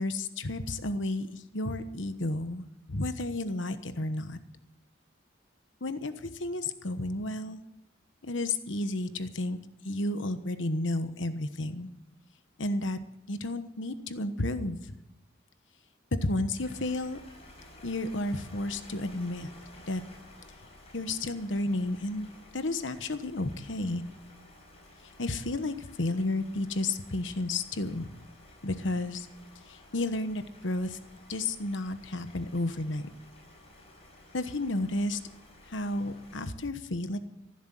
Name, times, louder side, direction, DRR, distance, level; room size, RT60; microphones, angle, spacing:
voice 1, 0.0-2.6 2.9-4.4 5.8-7.6 8.2-9.6 9.8-11.9 12.6-13.0 13.3-14.8 16.2-17.2 17.8-19.5 19.9-20.0 20.9-24.0 25.2-28.1 28.6-29.3 29.7-31.0 31.3-33.1 34.3-35.2 35.6-37.2, left 2 dB, 70° left, 10 dB, 1.2 m, -32 dB
sound 1, 16.5-36.5, left 1 dB, 35° left, 4.9 m, -54 dB
15.0 x 12.0 x 7.6 m, 0.85 s
head